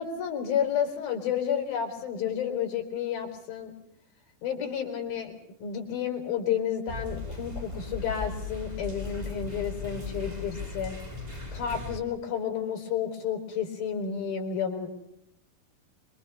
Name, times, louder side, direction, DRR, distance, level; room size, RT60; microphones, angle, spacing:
voice 1, 0.0-3.7 4.4-11.0 11.5-14.9, left 8 dB, 75° left, 2 dB, 5.8 m, -31 dB
sound 1, 6.9-12.0, left 3 dB, 10° right, 3.1 m, -37 dB
26.0 x 23.5 x 5.5 m, 0.81 s
omnidirectional pair, 4.3 m